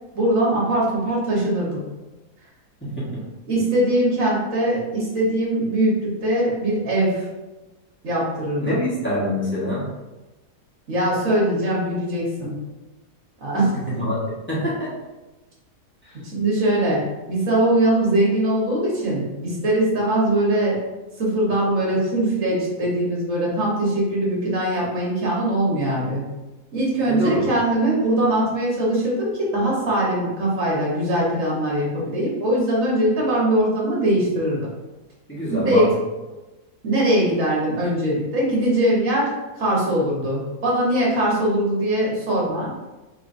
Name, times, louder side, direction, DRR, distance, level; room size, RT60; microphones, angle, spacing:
voice 1, 0.1-1.8 3.5-7.3 8.0-8.9 10.9-12.5 13.4-13.7 16.2-20.8 21.2-26.3 26.7-34.7 35.6-35.9 36.8-42.7, right 1 dB, 55° right, -4 dB, 1.6 m, -21 dB
voice 2, 2.8-3.2 8.6-9.8 13.9-14.9 16.0-16.2 27.1-27.5 35.3-35.9, left 1 dB, 10° left, -8 dB, 1.3 m, -25 dB
5.7 x 3.3 x 2.6 m, 1.1 s
omnidirectional pair, 1.7 m